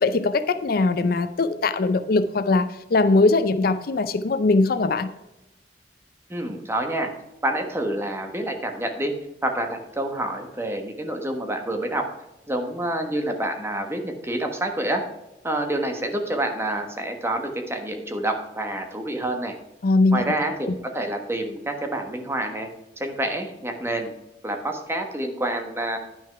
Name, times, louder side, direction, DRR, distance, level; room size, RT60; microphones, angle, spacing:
voice 1, 0.0-5.1 19.8-20.2 20.6-20.7, left 3 dB, 55° left, 12 dB, 0.5 m, -21 dB
voice 2, 6.3-7.1 7.4-9.1 9.4-12.0 12.5-15.0 15.4-19.5 20.1-22.7 23.0-24.1 24.4-26.0, right 1 dB, 15° right, 4 dB, 1.2 m, -27 dB
10.0 x 6.2 x 4.6 m, 0.94 s
head